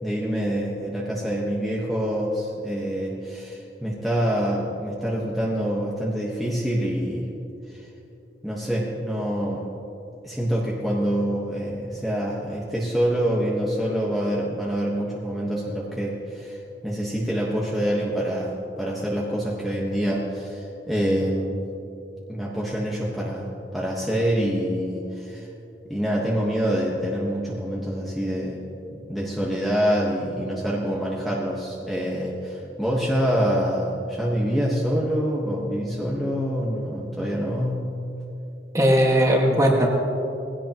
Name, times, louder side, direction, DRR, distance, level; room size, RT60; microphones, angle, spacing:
voice 1, 0.0-7.3 7.7-7.9 8.4-9.7 10.2-21.7 22.3-25.5 25.9-28.6 28.9-37.8, equal, ahead, -5 dB, 1.3 m, -26 dB
voice 2, 38.7-39.9, equal, 20° right, -1 dB, 1.8 m, -18 dB
20.5 x 16.5 x 3.0 m, 2.9 s
head